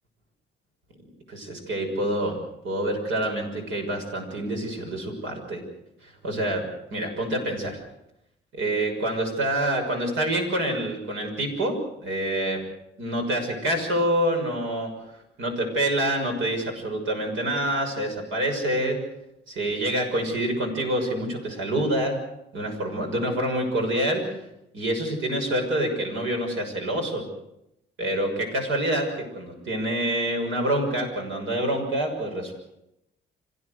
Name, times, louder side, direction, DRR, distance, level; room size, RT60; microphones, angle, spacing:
voice 1, 1.3-2.4 2.6-5.6 6.0-7.8 8.5-12.6 13.0-14.9 15.4-19.0 19.5-22.2 22.5-24.4 24.7-27.2 28.0-32.5, right 1 dB, 80° right, 3 dB, 6.5 m, -27 dB
26.5 x 16.0 x 8.0 m, 0.82 s
cardioid pair, 90°, 20 cm